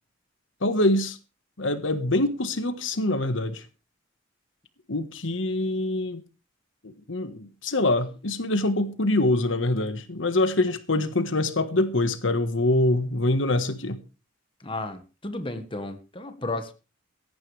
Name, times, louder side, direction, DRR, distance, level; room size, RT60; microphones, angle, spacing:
voice 1, 0.6-1.2 1.6-3.6 4.9-6.2 6.8-14.0, left 2 dB, 70° left, 1.4 m, -24 dB
voice 2, 14.6-16.7, left 2 dB, 25° left, 1.6 m, -33 dB
17.5 x 14.5 x 3.4 m
head